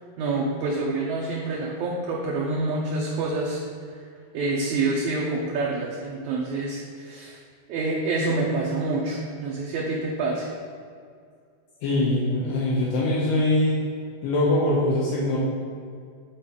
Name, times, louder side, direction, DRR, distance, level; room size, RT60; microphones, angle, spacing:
voice 1, 0.2-3.6 3.9-4.0 4.3-7.4 7.7-10.5, right 3 dB, 75° right, -3 dB, 1.8 m, -27 dB
voice 2, 11.8-13.8 14.2-15.4, left 1 dB, 75° left, -5 dB, 2.4 m, -22 dB
9.4 x 4.4 x 3.7 m, 2.2 s
omnidirectional pair, 4.1 m